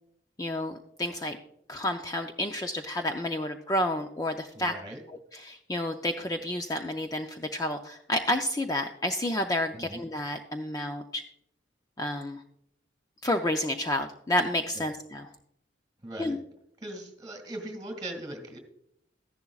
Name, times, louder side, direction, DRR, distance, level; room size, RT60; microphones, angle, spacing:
voice 1, 0.4-1.4 1.7-4.7 5.3-11.2 12.0-12.4 13.2-15.3 16.2-16.4, left 1 dB, 20° left, 5 dB, 0.5 m, -30 dB
voice 2, 4.5-5.0 9.7-10.0 14.8-14.9 16.0-16.4 16.8-18.6, right 1 dB, 20° right, 4 dB, 2.2 m, -40 dB
14.0 x 11.0 x 2.4 m, 0.74 s
head